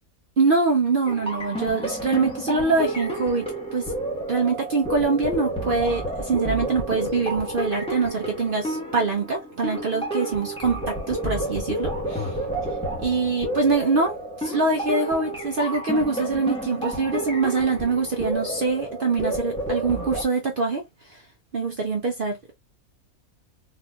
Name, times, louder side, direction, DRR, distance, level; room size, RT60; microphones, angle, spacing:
voice 1, 0.4-3.9 4.3-12.3 13.0-20.8 21.1-21.2 21.5-22.5, right 4 dB, 55° right, 0.6 m, -24 dB
sound 1, 1.1-20.2, right 1 dB, 5° left, 0.9 m, -30 dB
3.9 x 2.7 x 2.3 m
omnidirectional pair, 1.5 m